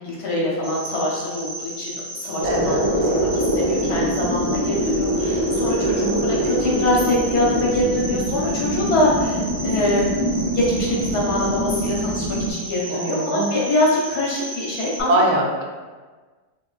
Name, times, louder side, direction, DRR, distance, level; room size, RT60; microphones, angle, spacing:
voice 1, 0.0-10.0 10.5-15.3, left 1 dB, 80° left, -5 dB, 1.5 m, -24 dB
Cricket, 0.6-15.0, right 2 dB, 55° right, 0.8 m, -35 dB
sound 1, 2.4-12.5, equal, 45° left, 0.4 m, -24 dB
voice 2, 2.4-2.9 5.9-6.2 12.9-13.5 15.1-15.6, right 1 dB, 85° right, -1 dB, 1.1 m, -22 dB
4.1 x 2.5 x 2.3 m, 1.4 s
omnidirectional pair, 1.6 m